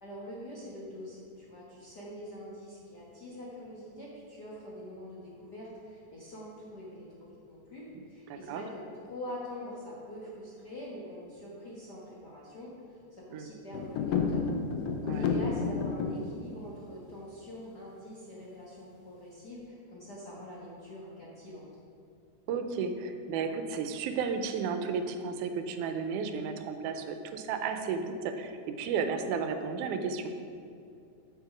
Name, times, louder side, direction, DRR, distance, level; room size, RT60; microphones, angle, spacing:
voice 1, 0.0-14.5 15.0-21.6, left 1 dB, 50° left, -7 dB, 1.2 m, -44 dB
voice 2, 8.3-8.6 13.3-13.5 15.1-15.3 22.5-30.3, right 5 dB, 80° right, 7 dB, 2.1 m, -33 dB
sound 1, 13.7-16.3, left 5 dB, 80° left, 1.4 m, -30 dB
8.2 x 7.1 x 4.9 m, 2.5 s
omnidirectional pair, 3.6 m